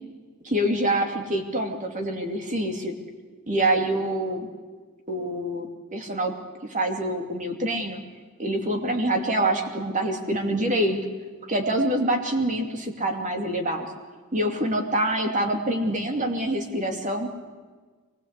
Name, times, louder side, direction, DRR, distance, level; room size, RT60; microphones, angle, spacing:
voice 1, 0.4-3.0 3.5-4.5 5.1-6.3 6.6-8.0 8.4-11.0 11.5-13.9 14.3-17.4, right 1 dB, 35° right, 3 dB, 2.7 m, -26 dB
24.0 x 20.0 x 8.3 m, 1.4 s
head